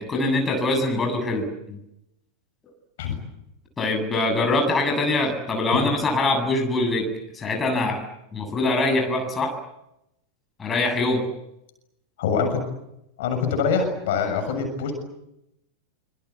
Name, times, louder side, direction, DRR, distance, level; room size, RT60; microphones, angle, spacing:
voice 1, 0.0-1.8 3.8-8.0 8.3-9.6 10.6-11.3, left 2 dB, 20° left, 4 dB, 7.5 m, -23 dB
voice 2, 12.2-12.6 13.2-14.9, left 5 dB, 55° left, 6 dB, 6.9 m, -24 dB
25.5 x 25.5 x 8.4 m, 0.85 s
figure-of-eight pair, 90°, 0 cm